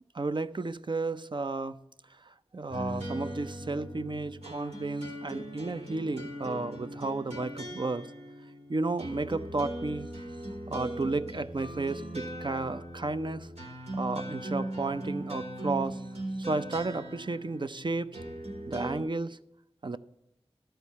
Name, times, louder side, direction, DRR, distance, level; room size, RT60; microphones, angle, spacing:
voice 1, 0.1-1.8 2.2-8.1 8.7-10.1 10.7-13.5 13.9-16.1 16.4-18.2 18.7-19.4 19.8-20.0, right 3 dB, 45° right, 0.5 m, -33 dB
sound 1, 2.7-19.0, right 1 dB, 85° right, 2.5 m, -39 dB
13.0 x 4.5 x 8.3 m
wide cardioid pair, 45°, 11 cm